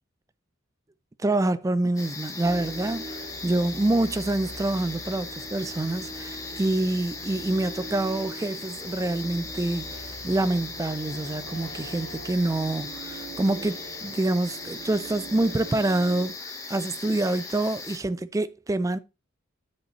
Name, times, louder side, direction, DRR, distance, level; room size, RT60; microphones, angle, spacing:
voice 1, 1.2-19.0, right 2 dB, 15° right, 0.3 m, -26 dB
sound 1, 2.0-18.0, left 3 dB, 15° left, 1.1 m, -39 dB
sound 2, 2.4-16.3, right 2 dB, 90° right, 4.6 m, -42 dB
10.0 x 5.3 x 3.0 m
head